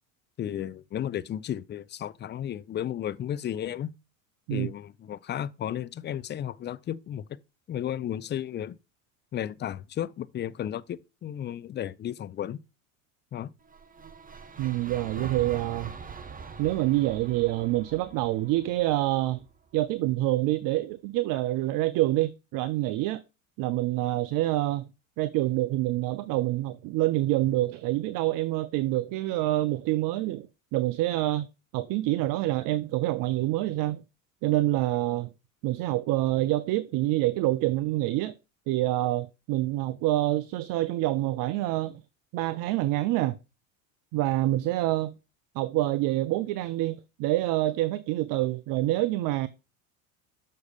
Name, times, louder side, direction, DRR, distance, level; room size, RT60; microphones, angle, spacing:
voice 1, 0.4-3.9 4.5-7.2 7.7-8.8 9.3-12.6 13.3-13.5, left 10 dB, 25° left, 0.5 m, -33 dB
sound 1, 13.6-19.8, right 5 dB, 20° right, 1.1 m, -43 dB
voice 2, 14.6-15.9 16.6-19.4 19.7-23.2 23.6-24.9 25.2-31.5 31.7-34.0 34.4-35.3 35.6-38.4 38.7-42.0 42.3-43.4 44.1-45.1 45.5-49.5, right 16 dB, 55° right, 0.6 m, -26 dB
6.8 x 6.4 x 5.1 m
hypercardioid pair, 85°, 41 cm